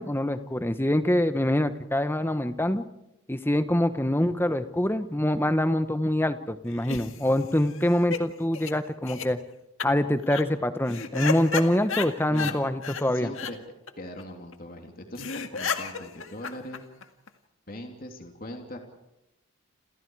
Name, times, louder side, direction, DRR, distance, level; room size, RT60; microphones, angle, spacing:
voice 1, 0.0-2.8 3.3-9.4 9.8-13.3, left 1 dB, 10° left, 10 dB, 1.1 m, -25 dB
sound 1, 6.7-8.2 8.5-8.7 9.1-9.3 9.8-9.9 10.2-10.4 10.9-12.5 12.8-13.0 13.3-13.5 13.9-14.0 14.2-14.3 14.5-14.6 14.9-15.0 15.2-17.3, left 5 dB, 65° left, 2.0 m, -33 dB
voice 2, 13.1-13.6 14.0-16.8 17.7-18.8, left 1 dB, 40° left, 3 dB, 3.1 m, -40 dB
29.5 x 28.5 x 4.8 m, 0.88 s
head